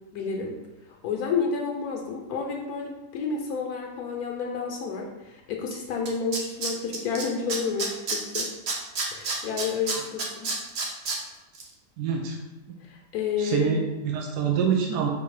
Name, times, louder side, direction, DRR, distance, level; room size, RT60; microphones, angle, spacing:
voice 1, 0.1-0.6 1.0-8.5 9.1-10.5 12.8-13.7, left 5 dB, 70° left, 1 dB, 1.1 m, -30 dB
Tools, 5.7-5.8 6.1-7.2 7.5-11.2 11.5-11.6, right 4 dB, 55° right, 0.8 m, -28 dB
voice 2, 12.0-12.4 13.4-15.1, right 6 dB, 80° right, 1 dB, 1.1 m, -26 dB
4.2 x 2.7 x 4.7 m, 1.1 s
omnidirectional pair, 1.7 m